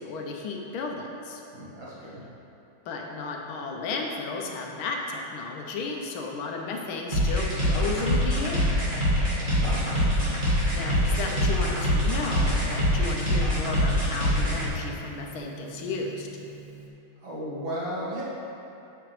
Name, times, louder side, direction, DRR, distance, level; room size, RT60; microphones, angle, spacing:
voice 1, 0.0-1.4 2.8-8.8 10.7-16.3, left 3 dB, 80° left, 1 dB, 1.6 m, -33 dB
voice 2, 1.5-2.2 9.2-10.1 17.2-18.2, equal, 70° right, -8 dB, 2.5 m, -35 dB
sound 1, 7.1-14.7, equal, 25° right, 1.8 m, -24 dB
Gong, 9.5-16.9, right 7 dB, 90° right, 1.7 m, -41 dB
7.6 x 6.8 x 3.2 m, 2.8 s
omnidirectional pair, 2.3 m